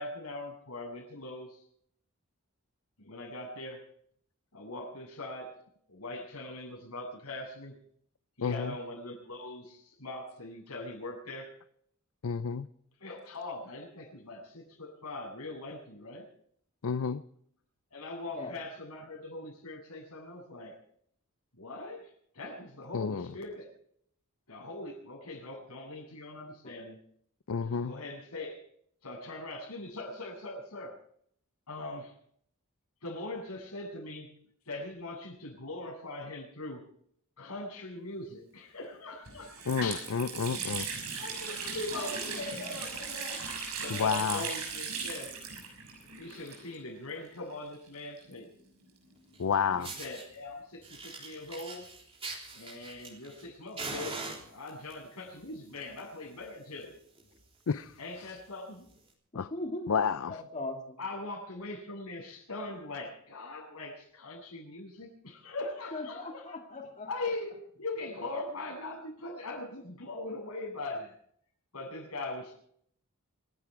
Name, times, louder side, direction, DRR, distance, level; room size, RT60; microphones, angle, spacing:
voice 1, 0.0-1.6 3.0-3.8 4.5-5.5 5.9-7.8 8.4-11.5 13.0-16.3 17.9-20.7 21.6-23.7 24.5-27.0 27.6-28.6 29.0-31.0 31.7-32.1 33.0-34.3 34.7-36.9 37.4-40.1 40.9-43.4 43.8-45.3 46.2-48.5 49.7-51.9 52.5-54.2 54.5-56.9 58.0-58.9 61.0-66.6 67.1-67.5 67.8-71.1 71.7-72.5, left 2 dB, 85° left, -1 dB, 7.8 m, -41 dB
voice 2, 8.4-8.7 12.2-12.7 16.8-17.2 22.9-23.3 27.5-27.9 39.7-40.9 43.9-44.4 49.4-49.9 57.7-57.9 59.3-59.5 59.9-60.4, left 6 dB, 65° left, 14 dB, 0.5 m, -30 dB
Water tap faucet, 38.8-38.9 39.3-47.0 47.2-47.3 48.2-49.7, right 5 dB, 80° right, 6.4 m, -38 dB
Fire, 49.3-49.4 49.8-50.2 50.8-53.4 53.8-54.9 55.7-56.0 56.3-56.4 56.8-56.9 57.1-57.4 57.9-58.0 59.0-59.1, right 3 dB, 25° right, 3.6 m, -41 dB
voice 3, 59.3-61.0 65.9-67.1, left 2 dB, 35° left, 1 dB, 2.2 m, -39 dB
27.0 x 11.0 x 4.7 m, 0.66 s
head